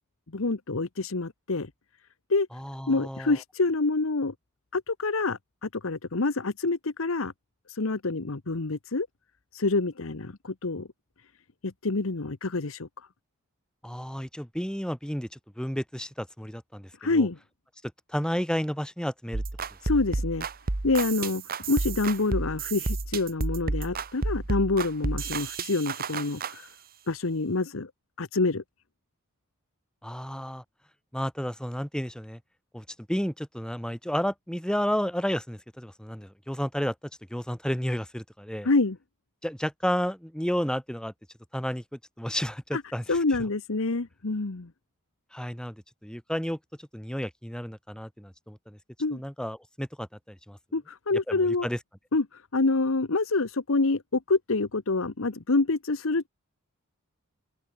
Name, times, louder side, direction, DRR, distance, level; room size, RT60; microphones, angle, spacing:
voice 1, 0.3-1.7 2.3-2.5 2.9-4.3 4.7-7.3 7.7-9.1 9.5-10.9 11.6-13.1 17.0-17.4 19.8-20.5 20.8-21.4 21.7-26.7 27.1-27.9 28.2-28.6 38.6-39.0 42.7-42.8 43.1-44.7 49.0-49.2 50.7-51.7 52.1-56.3, left 3 dB, 70° left, 1.1 m, -27 dB
voice 2, 2.5-3.4 13.8-17.3 18.1-19.4 30.0-30.6 31.1-32.4 32.7-36.9 37.3-38.7 39.4-41.1 41.5-43.0 45.3-45.8 46.0-48.8 49.1-50.6 51.3-51.8, equal, 5° left, 3.0 m, -32 dB
sound 1, 19.3-26.5, right 3 dB, 45° right, 1.2 m, -31 dB
head